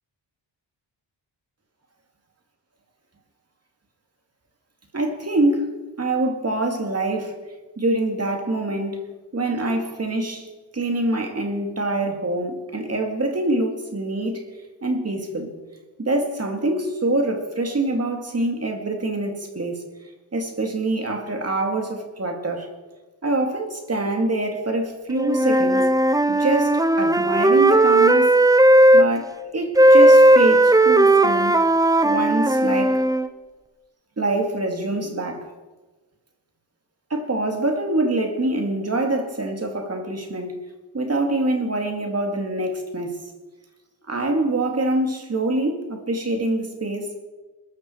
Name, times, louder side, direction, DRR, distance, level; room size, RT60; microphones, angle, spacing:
voice 1, 4.9-7.3 7.8-9.1 9.3-10.5 10.7-14.4 14.8-15.5 16.0-19.9 20.3-22.7 23.2-25.9 26.3-28.4 28.9-31.6 32.0-33.0 34.2-35.5 37.1-40.6 40.9-43.2 44.1-47.1, right 2 dB, 30° right, 4 dB, 2.3 m, -25 dB
Wind instrument woodwind instrument, 25.1-29.1 29.7-33.3, right 1 dB, 10° right, 0.5 m, -16 dB
21.0 x 13.5 x 4.6 m, 1.2 s
wide cardioid pair, 155°, 47 cm